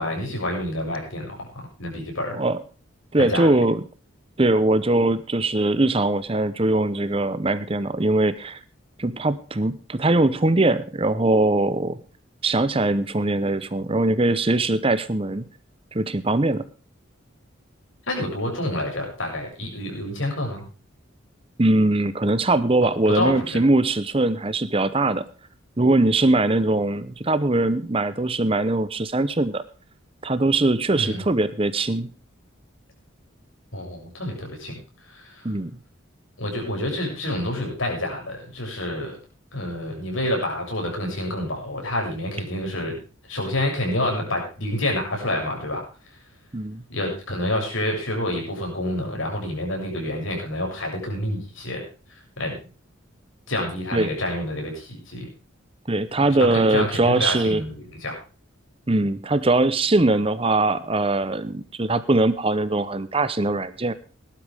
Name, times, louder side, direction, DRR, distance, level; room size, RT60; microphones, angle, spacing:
voice 1, 0.0-2.4 3.2-3.6 18.1-20.6 23.1-23.6 30.9-31.2 33.7-34.8 35.1-35.4 36.4-39.2 39.5-43.0 43.3-45.8 46.9-51.8 52.4-52.5 53.5-55.3 56.2-58.1, left 1 dB, 70° left, 1 dB, 7.2 m, -28 dB
voice 2, 3.1-3.8 4.4-8.6 9.0-12.0 12.4-15.5 15.9-16.7 21.6-25.2 25.8-29.6 30.2-32.1 35.4-35.7 46.5-46.8 53.9-54.1 55.9-57.6 58.9-63.9, right 2 dB, 25° right, 14 dB, 0.7 m, -21 dB
18.5 x 12.0 x 3.5 m, 0.35 s
head